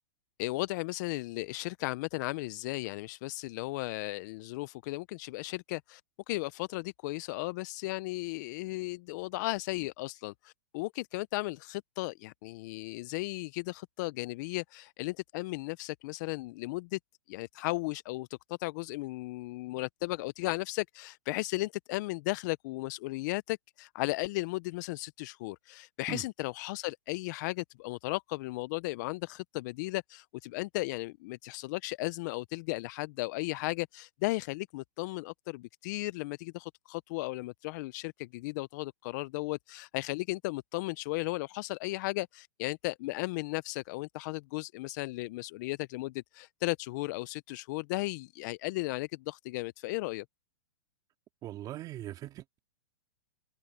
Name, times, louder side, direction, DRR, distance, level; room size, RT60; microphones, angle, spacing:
voice 1, 0.4-6.0 6.3-17.0 17.3-18.3 18.6-50.2, left 21 dB, 45° left, 0.6 m, -35 dB
voice 2, 51.4-52.6, right 14 dB, 30° right, 3.6 m, -40 dB
hypercardioid pair, 135°, 13 cm